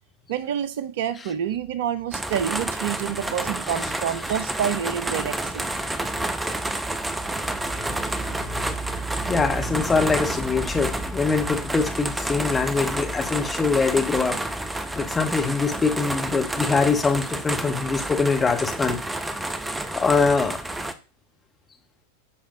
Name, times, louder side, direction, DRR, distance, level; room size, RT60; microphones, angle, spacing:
voice 1, 0.3-5.7, right 9 dB, 55° right, 0.5 m, -28 dB
sound 1, 2.1-20.9, right 2 dB, 10° right, 0.6 m, -29 dB
voice 2, 7.8-8.7 9.2-14.4 15.0-19.0 19.9-20.6, left 4 dB, 15° left, 1.0 m, -23 dB
14.0 x 5.0 x 2.6 m
figure-of-eight pair, 90°, 0 cm